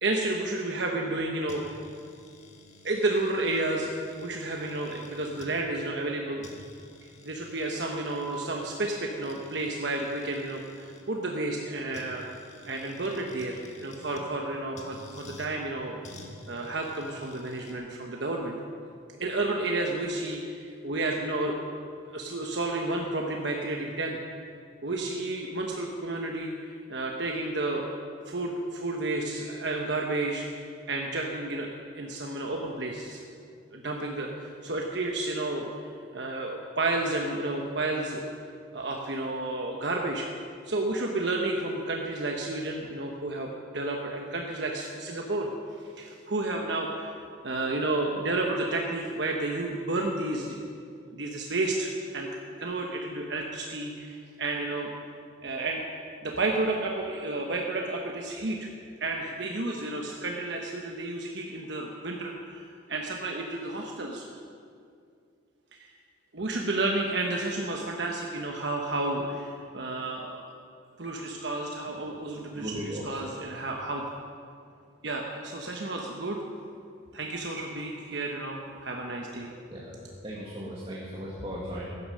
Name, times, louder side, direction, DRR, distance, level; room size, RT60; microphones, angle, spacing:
voice 1, 0.0-1.6 2.8-6.4 7.0-12.2 12.6-16.0 16.5-18.6 19.2-21.6 22.1-24.2 24.8-26.5 26.9-27.9 28.3-30.4 30.9-31.7 31.9-33.2 33.7-35.6 36.1-38.3 38.7-40.3 40.7-47.1 47.4-50.6 51.1-52.3 52.6-54.9 55.4-55.8 56.2-58.7 59.0-64.2 65.7-65.9 66.3-70.4 71.0-72.7 73.1-74.0 75.0-76.4 77.1-79.6, right 2 dB, 60° right, 0 dB, 1.2 m, -31 dB
sound 1, 1.5-5.5 6.1-6.2 6.4-11.0 11.9-14.3 14.8-15.5 16.0-17.7, left 1 dB, 35° left, 1.6 m, -51 dB
voice 2, 72.5-73.4 79.7-81.8, equal, 30° right, -6 dB, 2.0 m, -37 dB
16.0 x 11.0 x 6.4 m, 2.3 s
head